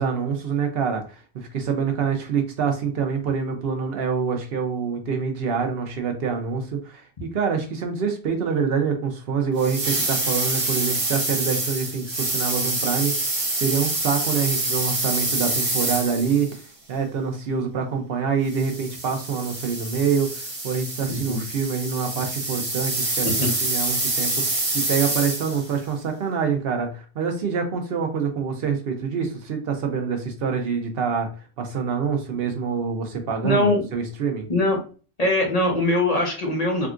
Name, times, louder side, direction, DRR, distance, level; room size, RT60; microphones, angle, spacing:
voice 1, 0.0-16.5 16.9-31.3 31.6-34.5, right 6 dB, 65° right, 5 dB, 0.8 m, -26 dB
sound 1, 9.6-16.6 18.5-25.7, right 2 dB, 35° right, 0.7 m, -26 dB
voice 2, 21.1-21.4 23.2-23.5 33.4-33.8 34.5-34.8 35.2-36.9, left 1 dB, 40° left, -1 dB, 0.9 m, -22 dB
3.6 x 2.3 x 2.4 m, 0.37 s
omnidirectional pair, 1.1 m